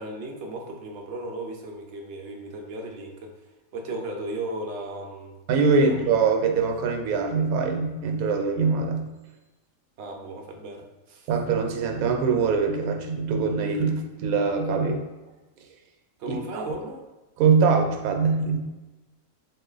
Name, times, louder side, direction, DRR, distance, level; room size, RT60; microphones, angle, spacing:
voice 1, 0.0-3.3 3.7-5.4 5.7-6.0 10.0-11.3 16.2-17.0, right 2 dB, 65° right, 1 dB, 0.8 m, -36 dB
voice 2, 5.5-9.0 11.3-15.0 16.3-16.6 17.4-18.6, right 5 dB, 90° right, 3 dB, 1.0 m, -23 dB
3.0 x 2.6 x 3.8 m, 1.1 s
omnidirectional pair, 1.5 m